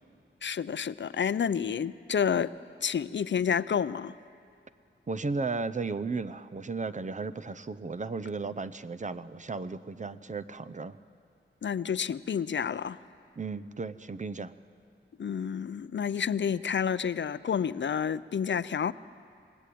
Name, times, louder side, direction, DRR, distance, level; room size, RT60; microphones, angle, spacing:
voice 1, 0.4-2.5 2.8-4.1 11.6-13.0 15.2-18.9, left 7 dB, 65° left, 16 dB, 0.5 m, -29 dB
voice 2, 5.1-11.0 13.4-14.5, right 4 dB, 35° right, 12 dB, 0.6 m, -35 dB
27.5 x 19.0 x 8.5 m, 2.4 s
wide cardioid pair, 110°, 21 cm